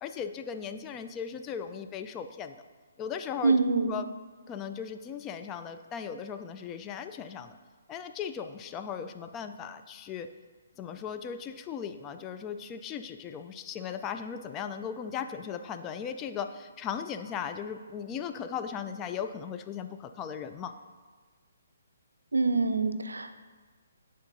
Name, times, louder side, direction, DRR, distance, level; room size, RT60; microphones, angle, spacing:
voice 1, 0.0-2.6 3.0-3.6 3.9-4.0 4.5-7.6 7.9-10.3 10.8-20.7, left 7 dB, 20° left, 7 dB, 0.3 m, -37 dB
voice 2, 3.4-3.9 22.3-23.3, right 3 dB, 80° right, 9 dB, 0.4 m, -25 dB
10.5 x 3.7 x 2.7 m, 1.4 s
figure-of-eight pair, 135°, 0 cm